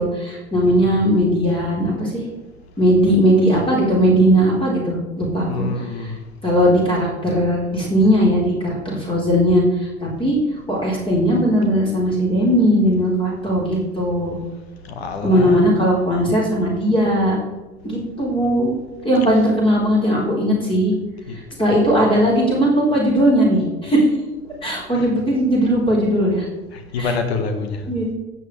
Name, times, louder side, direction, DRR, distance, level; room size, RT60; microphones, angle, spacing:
voice 1, 0.0-2.3 2.8-6.1 6.4-10.4 10.7-14.4 15.2-17.4 17.8-18.7 19.0-20.9 21.3-24.1 24.6-26.5 27.0-27.1 27.9-28.1, equal, 15° left, -4 dB, 4.3 m, -18 dB
voice 2, 0.7-1.0 5.5-6.2 14.8-15.7 21.3-21.4 21.7-22.1 24.9-25.0 26.7-27.8, left 4 dB, 65° left, 6 dB, 1.7 m, -27 dB
16.5 x 7.7 x 3.4 m, 1.2 s
figure-of-eight pair, 70°, 33 cm